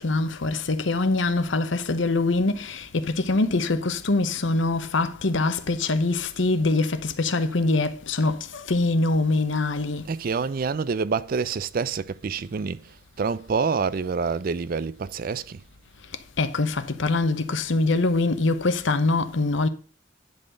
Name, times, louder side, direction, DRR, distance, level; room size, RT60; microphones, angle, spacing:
voice 1, 0.0-10.1 16.4-19.7, left 3 dB, 75° left, 0.9 m, -24 dB
voice 2, 10.1-12.8 13.2-15.6, right 5 dB, 50° right, 0.4 m, -27 dB
10.5 x 4.2 x 6.5 m
head